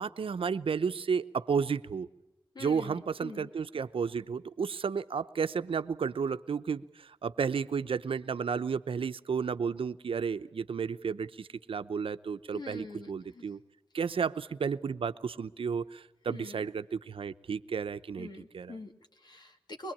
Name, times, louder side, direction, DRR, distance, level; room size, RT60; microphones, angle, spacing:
voice 1, 0.0-2.1 2.6-13.6 13.9-18.3 18.5-18.8, right 6 dB, 85° right, 12 dB, 0.7 m, -32 dB
voice 2, 2.5-3.5 12.5-13.4 16.3-16.6 18.2-19.9, left 2 dB, 50° left, 5 dB, 2.3 m, -45 dB
23.0 x 21.5 x 8.6 m, 0.99 s
wide cardioid pair, 80°, 9 cm